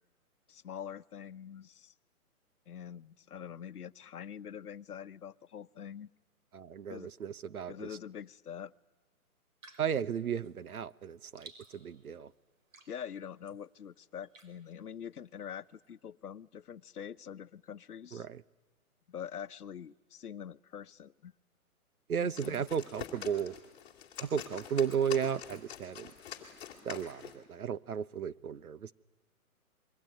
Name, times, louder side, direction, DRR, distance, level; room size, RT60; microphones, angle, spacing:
voice 1, 0.5-1.9 2.7-6.1 6.9-7.1 7.7-8.7 12.2-12.3 12.9-18.3 19.1-21.3 22.2-22.6, left 8 dB, 85° left, 1.0 m, -45 dB
voice 2, 6.5-7.9 9.8-12.3 18.1-18.4 22.1-23.5 24.2-26.1 26.8-28.9, right 8 dB, 75° right, 1.1 m, -34 dB
sound 1, 9.6-15.9, right 3 dB, 60° right, 5.5 m, -60 dB
sound 2, 22.1-27.4, left 9 dB, 10° left, 2.4 m, -46 dB
27.0 x 23.0 x 9.2 m
hypercardioid pair, 165°, 44 cm